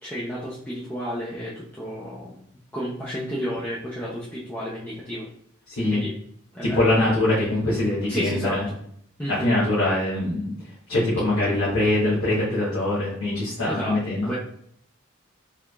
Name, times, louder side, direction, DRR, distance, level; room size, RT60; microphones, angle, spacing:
voice 1, 0.0-2.4 2.7-5.3 5.9-6.1 6.5-7.2 8.1-8.7 9.2-9.6 13.7-14.0 14.3-14.4, equal, 10° left, -7 dB, 0.6 m, -32 dB
voice 2, 6.7-8.6 9.3-10.5 10.9-14.3, left 1 dB, 85° left, -8 dB, 1.2 m, -23 dB
4.8 x 3.4 x 2.4 m, 0.67 s
head